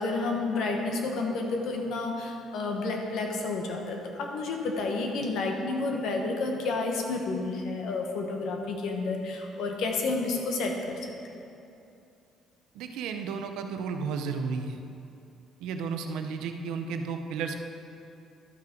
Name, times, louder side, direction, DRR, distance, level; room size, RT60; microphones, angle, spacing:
voice 1, 0.0-11.0 11.3-11.4, left 3 dB, 70° left, 2 dB, 1.2 m, -30 dB
voice 2, 12.7-14.8 15.6-17.6, right 5 dB, 85° right, 6 dB, 0.7 m, -33 dB
12.0 x 6.1 x 4.5 m, 2.7 s
cardioid pair, 140°, 0 cm